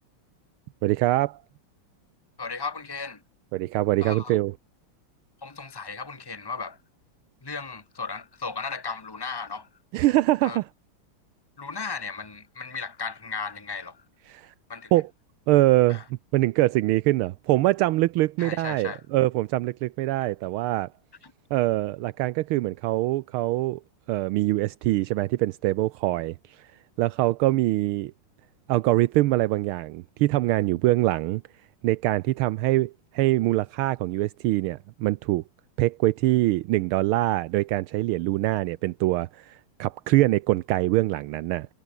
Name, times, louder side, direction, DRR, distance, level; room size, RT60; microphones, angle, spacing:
voice 1, 0.8-1.4 3.5-4.5 9.9-10.6 14.3-14.5 14.9-15.1 15.5-16.0 16.3-20.9 21.5-23.8 24.1-26.3 27.0-28.1 28.7-31.4 31.8-35.4 35.8-41.7, right 17 dB, 80° right, 1.5 m, -23 dB
voice 2, 2.4-3.2 4.0-4.4 5.4-6.8 7.4-9.7 10.4-10.6 11.6-14.0 14.7-14.9 15.9-16.0 18.4-19.0 21.2-21.3, left 4 dB, 20° left, 0.7 m, -35 dB
omnidirectional pair, 2.4 m